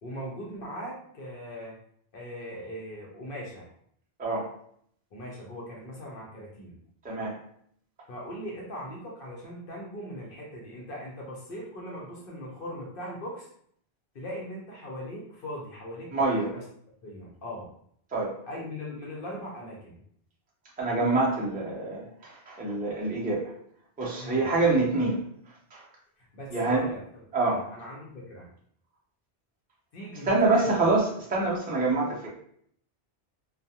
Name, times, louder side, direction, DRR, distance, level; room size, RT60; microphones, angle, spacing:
voice 1, 0.0-1.8 2.1-3.7 5.1-6.8 8.1-13.5 14.1-16.6 17.0-17.7 18.5-20.0 24.2-24.5 26.2-28.5 29.9-30.8, equal, 60° left, -3 dB, 0.8 m, -40 dB
voice 2, 4.2-4.5 7.0-7.4 16.1-16.5 18.1-18.4 20.8-23.5 24.0-25.2 25.7-25.8 26.5-26.8 27.3-27.6 30.2-32.3, right 3 dB, 10° right, -4 dB, 0.4 m, -26 dB
2.3 x 2.2 x 2.7 m, 0.65 s
omnidirectional pair, 1.1 m